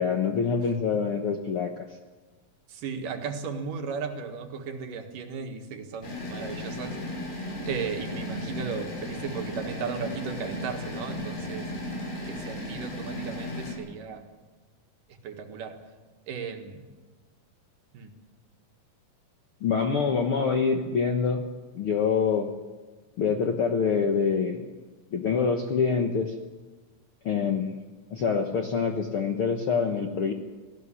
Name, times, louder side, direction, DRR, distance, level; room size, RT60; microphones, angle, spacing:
voice 1, 0.0-1.8 19.6-22.5 23.2-24.6 25.1-26.3 27.2-27.7 28.1-30.3, left 5 dB, 60° left, 4 dB, 1.5 m, -26 dB
voice 2, 2.7-7.0 7.6-11.7 12.3-14.2 15.2-15.8 16.3-16.9 17.9-18.1, right 5 dB, 65° right, 5 dB, 3.1 m, -35 dB
sound 1, 6.0-13.7, left 1 dB, 75° left, 7.5 m, -35 dB
19.0 x 16.5 x 9.8 m, 1.3 s
omnidirectional pair, 4.1 m